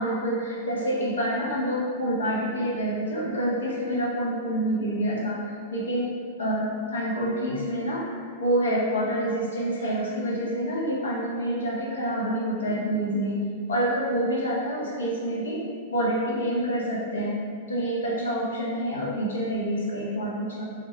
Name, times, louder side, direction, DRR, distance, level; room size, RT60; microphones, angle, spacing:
voice 1, 0.0-6.1 6.4-13.4 13.7-15.6 15.9-17.4 17.7-20.7, right 1 dB, 75° left, -4 dB, 0.6 m, -27 dB
2.3 x 2.0 x 3.5 m, 2.1 s
figure-of-eight pair, 100°, 0 cm